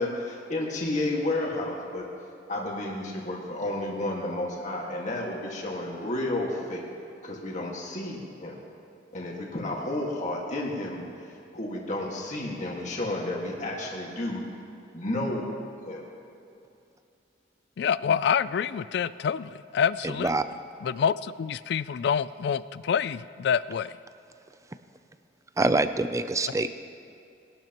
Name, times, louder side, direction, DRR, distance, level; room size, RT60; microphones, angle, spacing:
voice 1, 0.0-2.0 2.5-6.9 7.2-8.6 9.1-11.0 11.5-14.4 14.9-15.5 15.8-16.0, left 1 dB, 45° left, -2 dB, 1.8 m, -31 dB
voice 2, 17.8-20.4 20.8-23.9, left 7 dB, 65° left, 17 dB, 0.3 m, -27 dB
voice 3, 25.6-26.7, right 2 dB, 20° right, 11 dB, 0.4 m, -25 dB
20.0 x 11.5 x 3.0 m, 2.6 s
head